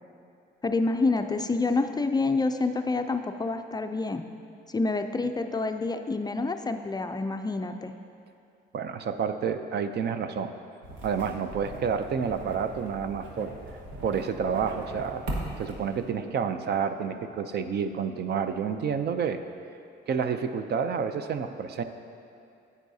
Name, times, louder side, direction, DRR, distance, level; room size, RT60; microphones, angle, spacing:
voice 1, 0.6-4.2 4.7-7.9, left 3 dB, 20° left, 7 dB, 0.3 m, -27 dB
voice 2, 8.7-10.5 11.0-13.5 14.0-15.2 15.6-19.4 20.1-21.8, right 6 dB, 55° right, 9 dB, 0.5 m, -29 dB
sound 1, 10.8-16.0, right 2 dB, 85° right, 1.4 m, -39 dB
10.0 x 8.3 x 2.7 m, 2.5 s
cardioid pair, 90°, 20 cm